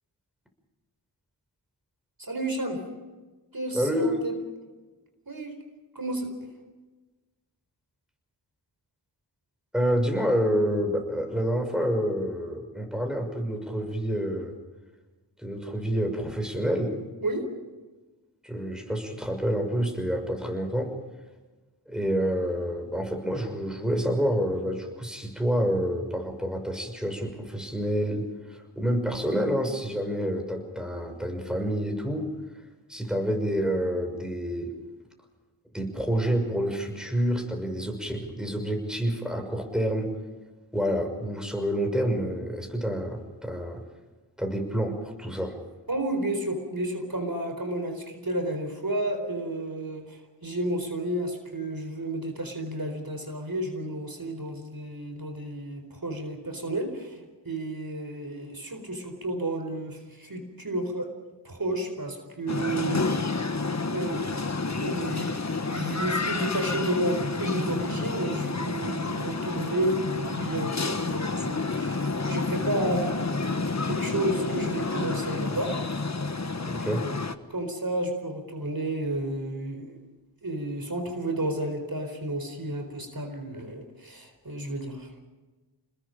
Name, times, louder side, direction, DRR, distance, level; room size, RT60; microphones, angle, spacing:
voice 1, 2.2-2.8 3.5-4.3 5.3-5.5 5.9-6.3 17.2-17.5 45.9-61.1 61.4-63.3 63.9-64.3 64.8-73.3 73.8-75.7 77.5-80.0 80.4-85.1, right 1 dB, 55° right, 4 dB, 4.3 m, -31 dB
voice 2, 3.7-4.2 9.7-14.5 15.4-17.0 18.4-20.9 21.9-32.3 32.9-34.7 35.7-40.1 40.7-43.8 44.4-45.6 76.8-77.0, equal, ahead, 4 dB, 6.0 m, -28 dB
sound 1, 62.5-77.3, left 3 dB, 40° left, 1.3 m, -29 dB
29.0 x 21.0 x 5.2 m, 1.2 s
wide cardioid pair, 50°, 43 cm